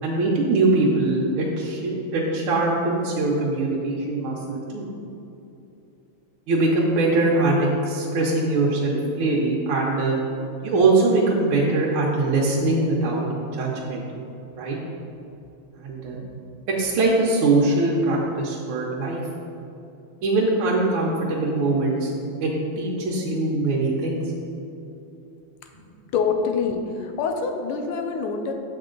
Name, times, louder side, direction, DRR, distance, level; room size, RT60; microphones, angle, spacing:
voice 1, 0.0-4.9 6.5-10.2 10.6-13.2 13.5-14.0 14.5-14.8 15.8-16.2 16.7-19.2 20.2-22.1 22.4-24.2, right 2 dB, 75° right, -4 dB, 1.6 m, -22 dB
voice 2, 26.1-28.5, left 5 dB, 80° left, 4 dB, 1.5 m, -25 dB
7.5 x 5.3 x 3.8 m, 2.7 s
omnidirectional pair, 2.4 m